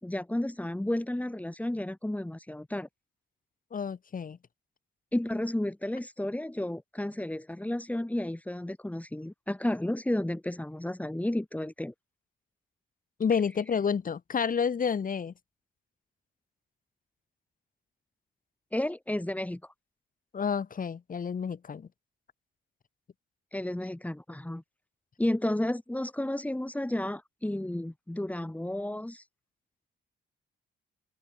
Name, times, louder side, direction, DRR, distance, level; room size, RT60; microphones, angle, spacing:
voice 1, 0.0-2.9 5.1-11.9 18.7-19.7 23.5-24.6 25.2-29.2, left 1 dB, 5° left, 6.3 m, -32 dB
voice 2, 3.7-4.4 13.2-15.3 20.3-21.9, left 6 dB, 45° left, 4.5 m, -29 dB
open air
cardioid pair, 90°, 20 cm